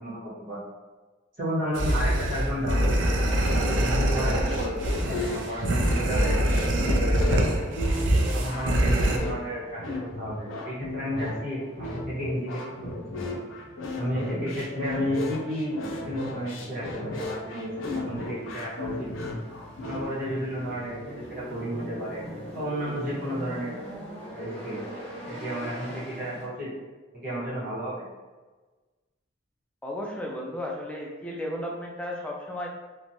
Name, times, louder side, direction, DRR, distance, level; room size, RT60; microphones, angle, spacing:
voice 1, 0.0-0.6 1.4-2.9 3.5-6.4 6.7-7.5 8.3-13.2 14.0-19.1 19.8-21.0 21.3-22.2 22.5-23.8 24.3-24.8 25.3-26.7 27.2-28.0, equal, 50° right, -8 dB, 1.0 m, -32 dB
sound 1, 1.8-9.2, right 1 dB, 70° right, 0.4 m, -24 dB
sound 2, 4.1-20.0, left 2 dB, 80° left, 0.4 m, -35 dB
sound 3, 8.2-26.5, equal, 30° left, 1.0 m, -44 dB
voice 2, 29.8-32.7, left 1 dB, 5° left, -2 dB, 0.3 m, -34 dB
2.9 x 2.2 x 2.6 m, 1.3 s
head